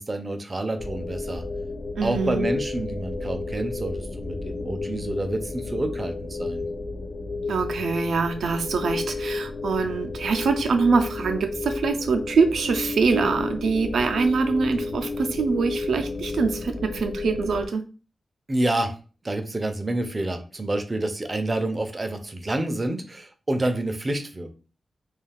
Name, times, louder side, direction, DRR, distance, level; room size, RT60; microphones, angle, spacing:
voice 1, 0.0-1.4 2.0-6.7 18.5-18.9 19.2-24.5, right 1 dB, 25° right, 6 dB, 0.4 m, -28 dB
sound 1, 0.8-17.7, left 3 dB, 70° left, 0.5 m, -32 dB
voice 2, 2.0-2.5 7.5-17.8, right 4 dB, 85° right, 6 dB, 0.4 m, -24 dB
2.3 x 2.3 x 3.3 m, 0.36 s
wide cardioid pair, 120°, 0 cm